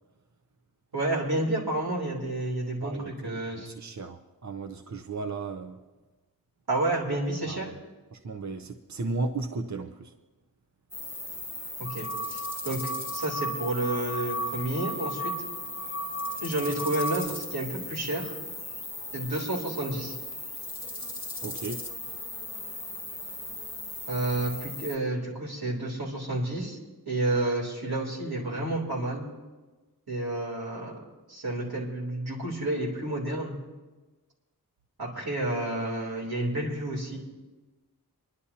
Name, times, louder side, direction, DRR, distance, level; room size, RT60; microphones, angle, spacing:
voice 1, 0.9-3.7 6.7-7.7 11.8-15.3 16.4-18.4 19.1-20.1 24.1-26.8 27.1-29.3 30.1-30.9 31.3-33.5 35.0-37.2, right 2 dB, 90° right, 3.3 m, -30 dB
voice 2, 2.8-5.8 7.5-7.7 8.1-10.1 21.4-21.9, right 3 dB, 50° right, 0.7 m, -35 dB
sound 1, 10.9-25.0, left 2 dB, 5° right, 1.8 m, -38 dB
sound 2, 11.8-17.3, equal, 35° left, 0.7 m, -35 dB
25.0 x 11.5 x 2.8 m
wide cardioid pair, 60°, 37 cm